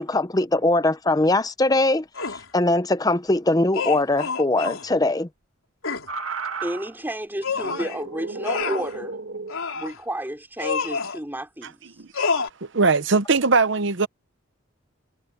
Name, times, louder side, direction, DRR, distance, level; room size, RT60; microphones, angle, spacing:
voice 1, 0.0-5.3, left 2 dB, 20° left, 0.7 m, -21 dB
sound 1, 2.2-2.5 3.7-4.9 5.8-6.1 7.4-8.0 8.4-8.9 9.5-10.0 10.6-11.2 12.1-12.5, left 5 dB, 80° left, 4.0 m, -27 dB
sound 2, 6.1-6.9 7.5-9.6 10.8-11.1, right 4 dB, 75° right, 2.3 m, -33 dB
voice 2, 6.6-9.2 9.7-11.8, right 1 dB, 10° right, 3.5 m, -31 dB
voice 3, 12.6-14.1, right 4 dB, 60° right, 0.8 m, -20 dB
head